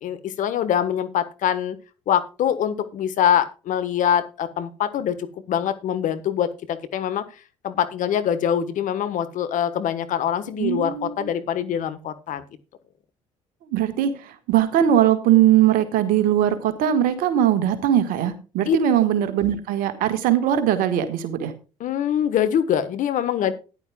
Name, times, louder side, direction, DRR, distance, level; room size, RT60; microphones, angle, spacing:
voice 1, 0.0-1.8 2.1-5.2 5.5-7.2 7.6-12.4 18.7-18.8 21.8-23.5, left 9 dB, 55° left, 12 dB, 1.4 m, -24 dB
voice 2, 10.6-11.3 13.7-21.5, right 10 dB, 65° right, 10 dB, 1.7 m, -20 dB
14.5 x 10.5 x 2.3 m, 0.32 s
hypercardioid pair, 55°, 15 cm